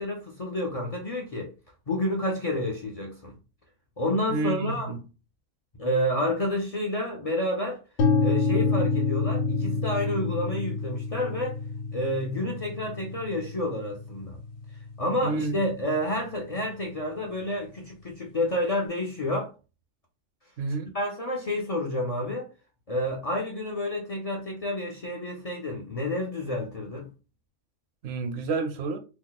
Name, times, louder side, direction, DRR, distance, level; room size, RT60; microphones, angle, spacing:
voice 1, 0.0-1.5 1.9-3.3 4.0-5.0 5.8-7.8 8.2-11.6 11.9-14.4 15.0-19.5 20.9-22.5 22.9-27.1, left 1 dB, 45° left, 0.4 m, -29 dB
voice 2, 4.3-5.0 15.2-15.5 20.6-20.9 28.0-29.0, right 3 dB, 65° right, 0.8 m, -29 dB
sound 1, 8.0-15.9, left 4 dB, 65° left, 0.8 m, -28 dB
2.9 x 2.1 x 3.9 m
omnidirectional pair, 1.3 m